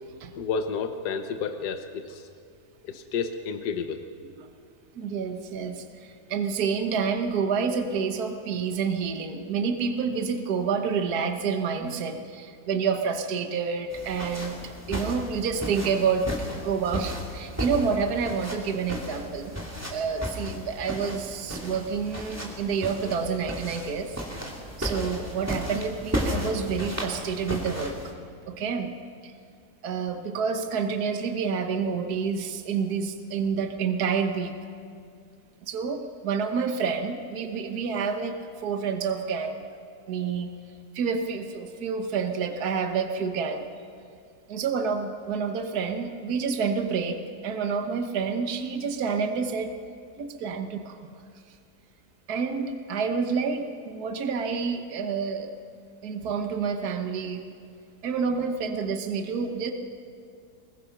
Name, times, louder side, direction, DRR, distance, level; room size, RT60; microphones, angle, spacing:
voice 1, 0.4-2.3 2.8-4.0, left 5 dB, 75° left, 7 dB, 1.5 m, -31 dB
voice 2, 4.9-14.6 14.9-16.3 16.6-19.5 19.9-24.2 24.8-28.1 28.5-28.9 29.2-29.3 29.8-34.5 35.7-39.6 40.1-40.5 40.9-43.6 44.5-49.7 50.2-51.0 52.3-55.5 56.0-57.4 58.0-59.7, right 5 dB, 65° right, 5 dB, 1.7 m, -28 dB
sound 1, 13.9-28.1, equal, 10° right, 3.0 m, -34 dB
24.5 x 21.5 x 5.9 m, 2.2 s
omnidirectional pair, 1.8 m